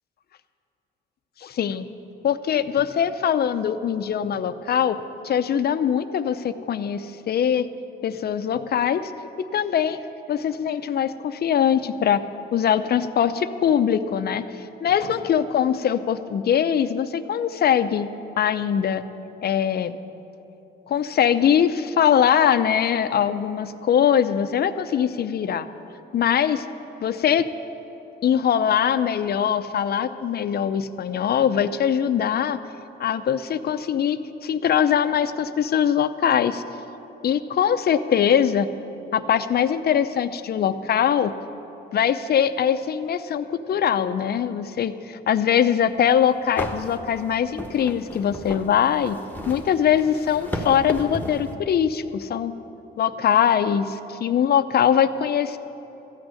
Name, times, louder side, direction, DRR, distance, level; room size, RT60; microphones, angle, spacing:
voice 1, 1.4-1.9 2.2-7.7 8.0-9.1 9.4-10.0 10.3-12.2 12.5-18.1 18.4-19.0 19.4-20.0 20.9-25.7 26.1-26.6 27.0-27.5 28.2-32.6 33.0-36.6 37.2-38.7 39.1-41.3 41.9-49.2 49.5-52.5 53.0-55.6, left 8 dB, 55° left, 12 dB, 0.6 m, -22 dB
sound 1, 46.0-46.1 46.6-51.5, left 1 dB, 10° left, 1.2 m, -34 dB
13.5 x 6.3 x 9.6 m, 3.0 s
cardioid pair, 90°, 20 cm